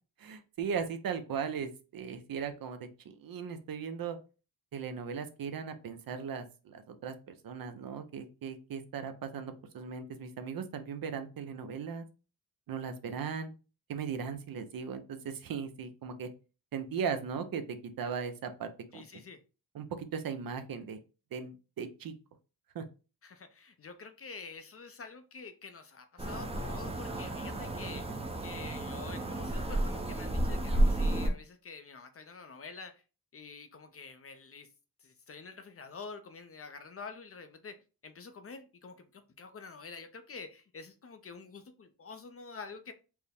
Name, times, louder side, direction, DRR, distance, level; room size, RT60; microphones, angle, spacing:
voice 1, 0.2-4.2 4.7-12.0 12.7-13.5 13.9-16.3 16.7-19.0 19.7-21.0 21.3-22.1 22.7-22.8, right 6 dB, 60° right, 0.7 m, -38 dB
voice 2, 18.9-19.4 23.2-28.1 28.4-33.0 33.3-34.7 35.0-42.9, left 4 dB, 35° left, 0.5 m, -47 dB
sound 1, 26.2-31.3, right 1 dB, 15° right, 0.6 m, -31 dB
4.5 x 2.1 x 3.4 m
cardioid pair, 90°, 39 cm